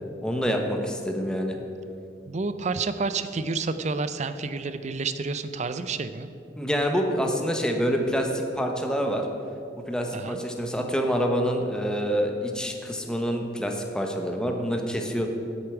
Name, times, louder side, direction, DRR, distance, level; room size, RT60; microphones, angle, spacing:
voice 1, 0.2-1.6 6.6-9.3 9.9-15.3, equal, 5° left, 3 dB, 0.9 m, -27 dB
voice 2, 2.3-6.3 10.1-10.4, right 4 dB, 40° right, 11 dB, 0.5 m, -29 dB
8.1 x 7.0 x 8.2 m, 2.6 s
head